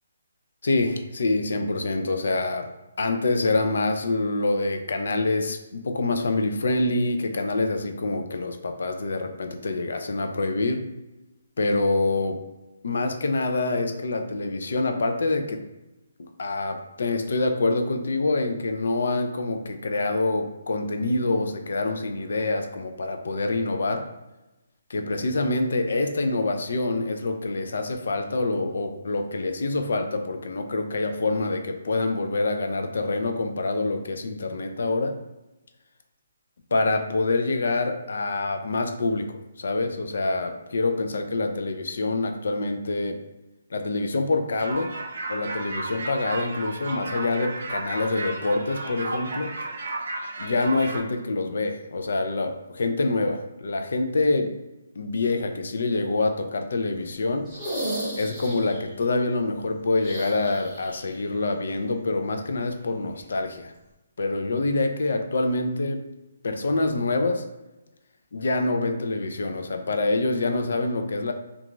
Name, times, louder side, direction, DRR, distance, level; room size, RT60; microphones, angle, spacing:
voice 1, 0.6-2.7 3.0-10.9 11.6-12.4 12.8-15.6 16.2-24.1 24.9-35.2 36.7-43.2 43.7-44.9 45.3-49.5 50.4-54.5 55.0-57.5 58.2-63.7 64.2-66.1 66.4-67.4 68.3-71.3, left 2 dB, 60° left, 5 dB, 0.4 m, -26 dB
sound 1, 44.6-51.0, right 2 dB, 55° right, 0.5 m, -33 dB
sound 2, 57.4-58.9 60.0-61.2 61.4-61.5 63.1-63.2, right 1 dB, ahead, 0.7 m, -33 dB
2.4 x 2.3 x 3.0 m, 1.0 s
hypercardioid pair, 180°, 0 cm